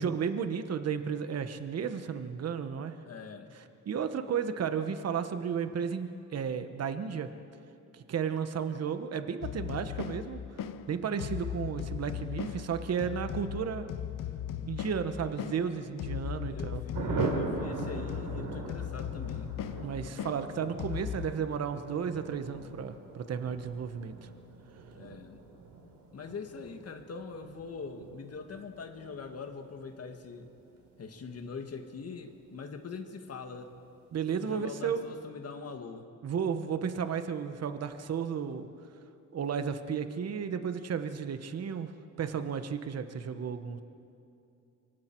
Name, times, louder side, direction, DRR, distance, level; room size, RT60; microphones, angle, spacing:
voice 1, 0.0-2.9 3.9-7.3 7.9-10.4 10.9-13.9 14.7-16.8 19.8-24.2 34.1-35.0 36.2-38.7 39.3-41.9 42.2-43.8, right 7 dB, 45° right, 9 dB, 1.1 m, -33 dB
voice 2, 3.0-3.5 16.5-19.5 24.9-25.4 26.1-30.5 31.0-33.7 34.4-36.1, left 5 dB, 45° left, 6 dB, 1.5 m, -43 dB
sound 1, 9.4-21.3, left 9 dB, 70° left, 0.9 m, -38 dB
Thunder, 16.9-33.1 33.3-33.4 33.7-33.9 34.1-34.5, right 3 dB, 75° right, 4.0 m, -41 dB
25.5 x 23.5 x 4.5 m, 2.7 s
cardioid pair, 120°, 34 cm